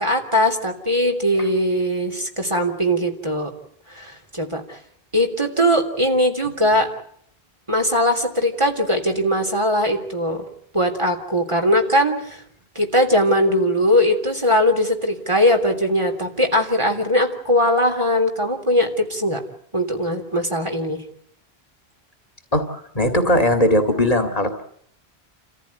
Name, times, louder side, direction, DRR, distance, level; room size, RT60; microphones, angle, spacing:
voice 1, 0.0-3.5 3.9-4.8 5.1-6.9 7.7-10.4 10.7-12.4 12.7-19.4 19.7-21.0, equal, 30° right, 3 dB, 3.4 m, -20 dB
voice 2, 22.5-24.6, left 1 dB, 35° left, 5 dB, 2.4 m, -19 dB
30.0 x 14.5 x 9.7 m, 0.68 s
omnidirectional pair, 1.1 m